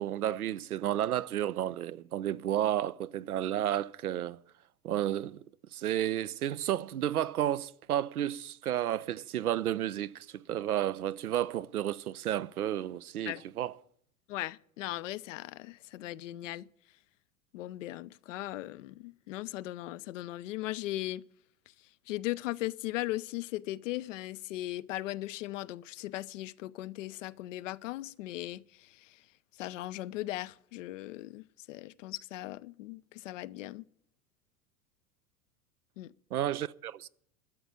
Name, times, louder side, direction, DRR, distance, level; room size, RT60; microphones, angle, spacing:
voice 1, 0.0-4.4 4.8-5.4 5.7-13.7 36.3-37.1, right 12 dB, 80° right, 0.6 m, -32 dB
voice 2, 14.3-16.7 17.5-21.2 22.1-29.2 29.6-33.8 36.0-36.1, left 16 dB, 60° left, 0.6 m, -38 dB
12.5 x 7.0 x 9.0 m
figure-of-eight pair, 85°, 44 cm